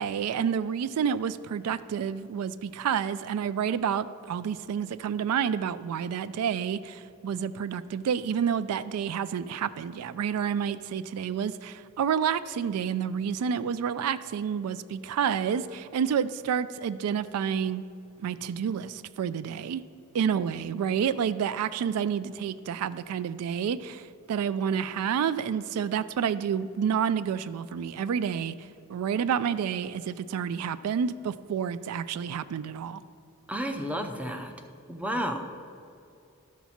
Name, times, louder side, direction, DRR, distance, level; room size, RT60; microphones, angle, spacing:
voice 1, 0.0-17.8 18.2-19.8 20.1-28.5 28.9-33.0, right 7 dB, 85° right, 17 dB, 0.3 m, -29 dB
voice 2, 33.5-34.5 34.9-35.5, equal, 5° right, 6 dB, 0.5 m, -31 dB
13.0 x 5.8 x 4.2 m, 2.5 s
head